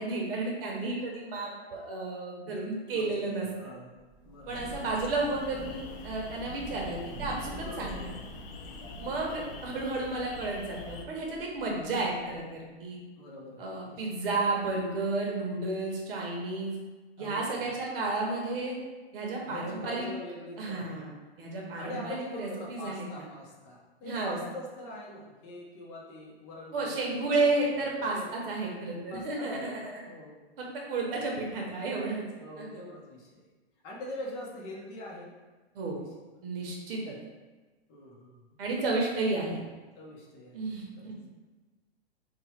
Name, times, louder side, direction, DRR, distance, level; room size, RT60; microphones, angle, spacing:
voice 1, 0.0-3.5 4.5-7.9 8.9-13.0 13.6-16.8 17.2-18.8 19.1-20.1 20.6-21.1 21.4-23.0 24.0-24.4 26.7-30.0 30.6-32.2 32.6-32.8 35.7-36.0 36.4-37.1 38.6-39.6 40.5-41.2, right 3 dB, 60° right, -2 dB, 0.9 m, -32 dB
voice 2, 2.9-3.9 4.2-4.7 7.6-8.2 9.3-9.7 11.7-12.0 13.1-14.1 17.2-17.7 19.4-21.0 21.8-27.6 27.9-28.4 29.1-30.5 31.1-31.2 32.4-33.5 33.8-35.3 35.9-36.1 37.9-38.6 40.0-40.7 41.0-41.1, left 1 dB, 35° left, -3 dB, 1.0 m, -44 dB
Thunder / Rain, 4.0-12.6, right 1 dB, 20° right, 1.1 m, -46 dB
sound 1, 4.5-11.0, left 4 dB, 60° left, 0.5 m, -45 dB
2.9 x 2.4 x 4.2 m, 1.3 s
hypercardioid pair, 130°, 32 cm